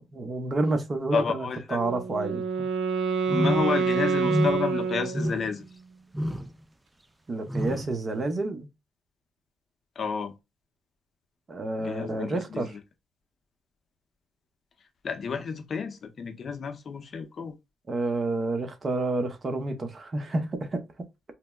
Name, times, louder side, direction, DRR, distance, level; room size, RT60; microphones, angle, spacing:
voice 1, 0.1-2.7 7.3-8.7 11.5-12.7 17.9-20.9, right 2 dB, 35° right, 0.7 m, -29 dB
voice 2, 1.1-1.8 3.3-5.7 10.0-10.3 11.8-12.8 15.0-17.6, left 5 dB, 50° left, 0.6 m, -30 dB
Wind instrument woodwind instrument, 1.7-5.7, right 5 dB, 70° right, 0.5 m, -27 dB
sound 1, 3.3-3.8 4.2-4.7 5.1-5.6 6.1-6.5 7.5-7.9, equal, 10° right, 0.3 m, -29 dB
4.3 x 2.0 x 2.2 m
cardioid pair, 90°, 0 cm